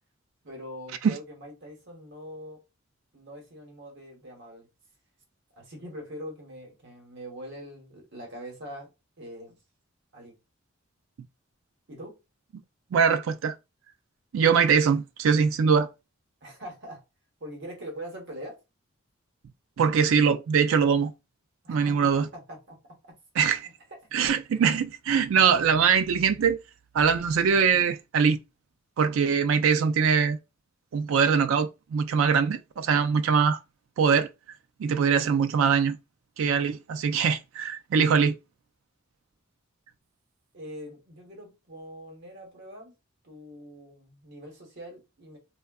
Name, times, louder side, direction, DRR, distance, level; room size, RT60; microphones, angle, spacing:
voice 1, 0.4-2.6 3.1-4.7 5.6-8.9 9.2-9.6 10.1-10.4 11.9-12.2 16.4-17.0 17.4-18.6 21.6-22.8 40.5-42.9 43.2-45.4, equal, 60° right, 1.0 m, -43 dB
voice 2, 12.9-13.5 14.3-15.9 19.8-21.1 21.7-22.3 23.4-23.7 24.1-26.6 26.9-28.4 29.0-30.4 30.9-33.6 34.0-34.3 34.8-36.0 36.4-38.3, right 6 dB, 80° right, 0.3 m, -22 dB
3.4 x 2.2 x 2.3 m
head